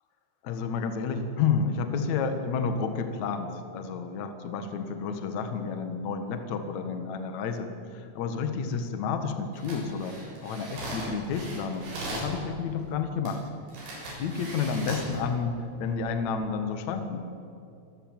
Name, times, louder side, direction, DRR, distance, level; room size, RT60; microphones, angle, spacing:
voice 1, 0.4-13.4 14.2-17.3, left 5 dB, 80° left, 8 dB, 1.6 m, -30 dB
sound 1, 9.5-12.3 13.3-13.4 13.7-15.2 15.7-15.9, right 1 dB, 85° right, 9.6 m, -38 dB
27.0 x 14.0 x 8.9 m, 2.7 s
omnidirectional pair, 5.7 m